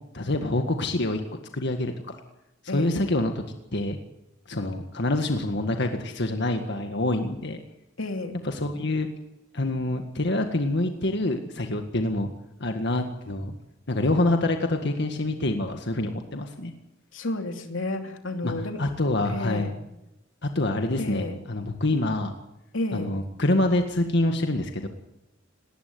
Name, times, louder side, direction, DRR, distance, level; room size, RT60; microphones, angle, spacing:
voice 1, 0.1-1.2 1.5-2.2 2.6-3.4 3.7-4.0 4.5-7.6 8.4-9.1 9.5-12.3 12.6-13.5 13.9-16.7 18.4-19.7 20.4-22.3 22.9-24.9, left 2 dB, 60° left, 5 dB, 1.8 m, -26 dB
voice 2, 8.0-8.4 17.1-18.8 19.3-19.7 21.0-21.4 22.7-23.1, left 2 dB, 90° left, 5 dB, 2.9 m, -31 dB
19.5 x 19.0 x 9.5 m, 0.90 s
head